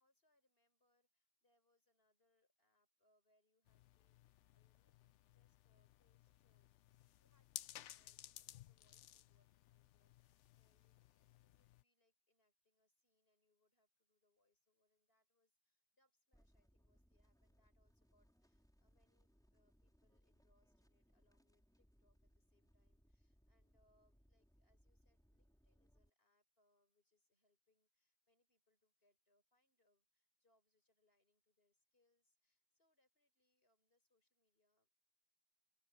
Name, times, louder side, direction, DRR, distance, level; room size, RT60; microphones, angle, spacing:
voice 1, 0.0-34.9, left 1 dB, 55° left, 5.6 m, -84 dB
sound 1, 3.7-11.8, left 12 dB, 80° left, 0.9 m, -58 dB
sound 2, 16.3-26.1, equal, 5° left, 4.6 m, -74 dB
open air
omnidirectional pair, 1.2 m